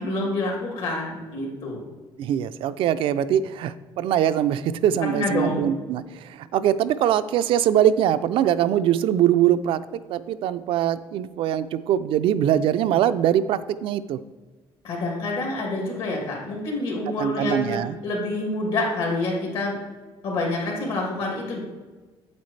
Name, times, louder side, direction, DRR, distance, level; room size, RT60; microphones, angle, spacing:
voice 1, 0.0-1.8 5.0-5.7 14.8-19.7 20.2-21.6, left 2 dB, 70° left, -1 dB, 2.6 m, -27 dB
voice 2, 2.2-9.8 10.1-14.2 17.2-17.9, right 10 dB, 65° right, 12 dB, 0.4 m, -22 dB
8.2 x 7.9 x 3.2 m, 1.3 s
cardioid pair, 150°, 10 cm